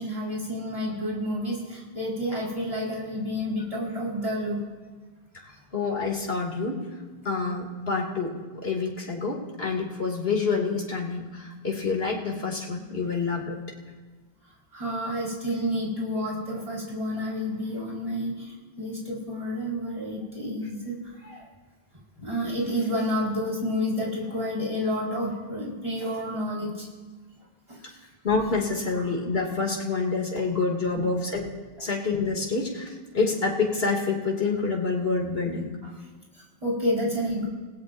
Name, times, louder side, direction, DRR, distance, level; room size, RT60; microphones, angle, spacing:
voice 1, 0.0-4.6 14.7-21.5 22.2-26.9 27.7-28.0 28.9-29.0 30.9-31.0 36.3-37.5, equal, 35° right, -4 dB, 4.9 m, -30 dB
voice 2, 5.7-6.8 7.2-8.3 8.6-13.6 22.2-22.3 28.2-31.4 31.8-35.7, left 4 dB, 75° left, -1 dB, 2.8 m, -27 dB
30.0 x 17.5 x 2.6 m, 1.4 s
omnidirectional pair, 1.0 m